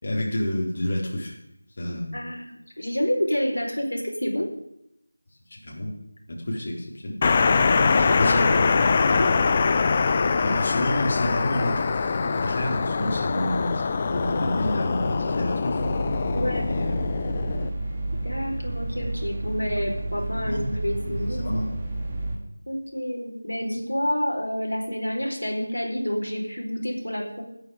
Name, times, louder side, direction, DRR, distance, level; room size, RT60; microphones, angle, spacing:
voice 1, 0.0-1.3 1.8-2.1 5.5-5.9 6.3-7.1 8.2-8.4 10.4-15.8 16.7-16.9 20.4-21.7, left 1 dB, 40° left, -3 dB, 4.3 m, -29 dB
voice 2, 2.1-4.5 6.5-6.7 7.8-8.7 9.1-9.3 13.3-13.4 16.3-16.7 18.2-21.5 22.7-27.4, equal, 85° left, 0 dB, 4.5 m, -29 dB
sound 1, 7.2-17.7, left 4 dB, 25° left, 0.7 m, -23 dB
sound 2, 15.8-22.4, right 2 dB, 25° right, 2.4 m, -31 dB
19.0 x 9.7 x 5.1 m, 0.82 s
figure-of-eight pair, 170°, 0 cm